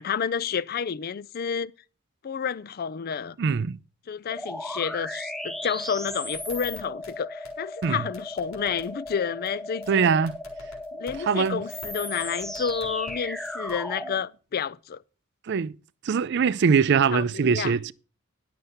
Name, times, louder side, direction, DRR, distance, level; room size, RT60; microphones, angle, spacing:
voice 1, 0.0-1.7 2.2-3.4 4.1-10.1 11.0-15.0 17.1-17.7, left 7 dB, 45° left, 0.4 m, -30 dB
voice 2, 3.4-3.8 7.8-8.1 9.9-10.4 11.2-11.6 15.4-15.8 16.0-17.9, right 6 dB, 55° right, 0.4 m, -22 dB
sound 1, 4.3-14.2, left 1 dB, ahead, 0.6 m, -36 dB
sound 2, 5.8-7.1 7.4-7.5 7.8-7.9 8.1-9.1 9.4-9.5 9.8-9.9 10.3-11.1 11.4-11.5 11.8-11.9 12.2-13.1 13.4-13.8, left 2 dB, 90° left, 3.9 m, -47 dB
11.5 x 6.7 x 5.7 m
head